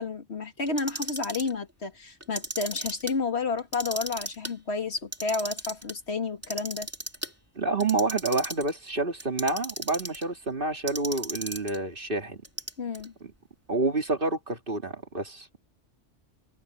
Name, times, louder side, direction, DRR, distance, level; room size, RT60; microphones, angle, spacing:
voice 1, 0.0-6.9 12.8-13.1, left 4 dB, 60° left, 2.2 m, -31 dB
Clock, 0.7-1.5 2.2-3.1 3.6-4.5 5.0-5.9 6.4-7.3 7.8-8.7 9.2-10.2 10.9-11.8 12.4-13.1, right 1 dB, 10° right, 2.8 m, -35 dB
voice 2, 7.6-12.4 13.7-15.7, right 2 dB, 45° right, 2.5 m, -28 dB
omnidirectional pair, 1.3 m